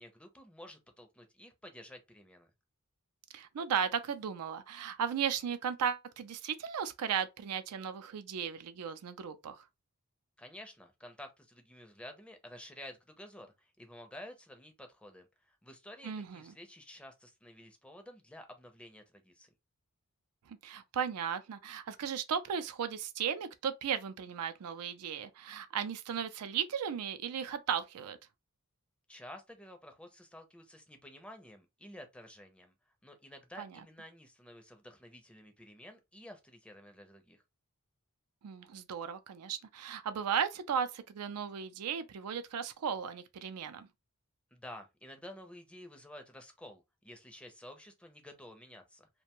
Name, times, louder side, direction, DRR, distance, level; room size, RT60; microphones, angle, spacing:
voice 1, 0.0-2.5 10.4-19.5 29.1-32.7 33.0-37.4 44.5-49.1, left 1 dB, 5° left, 0.5 m, -51 dB
voice 2, 3.3-9.6 16.0-16.5 20.5-28.2 33.6-33.8 38.4-43.9, right 7 dB, 85° right, 0.4 m, -36 dB
2.5 x 2.2 x 2.9 m
head